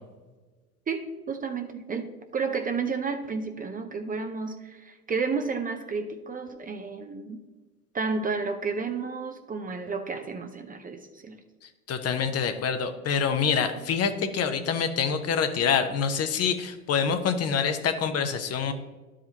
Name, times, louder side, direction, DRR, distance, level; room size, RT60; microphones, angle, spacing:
voice 1, 0.9-7.4 7.9-11.4 15.4-15.5, right 4 dB, 20° right, 6 dB, 0.6 m, -31 dB
voice 2, 11.9-18.7, left 6 dB, 35° left, 8 dB, 0.9 m, -26 dB
13.0 x 5.0 x 2.9 m, 1.3 s
figure-of-eight pair, 70°, 45 cm